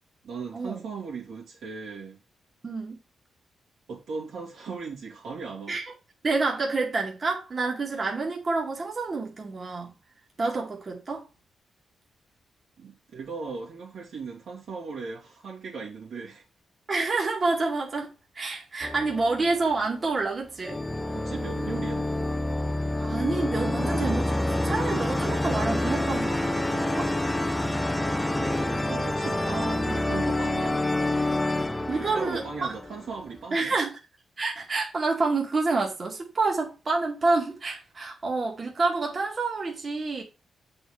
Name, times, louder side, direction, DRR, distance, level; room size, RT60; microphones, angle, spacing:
voice 1, 0.2-2.2 3.9-5.8 12.8-16.4 21.1-22.1 28.3-30.8 31.9-33.7, right 5 dB, 75° right, 2.5 m, -38 dB
voice 2, 2.6-3.0 5.7-5.9 6.2-9.9 10.4-11.2 16.9-20.8 23.0-27.1 29.7-29.8 31.9-32.7 33.5-33.9 34.4-40.2, right 3 dB, 30° right, 2.1 m, -28 dB
sound 1, 18.8-20.0 20.6-33.3, left 1 dB, 10° left, 0.6 m, -28 dB
8.1 x 4.4 x 4.9 m
wide cardioid pair, 150°, 0 cm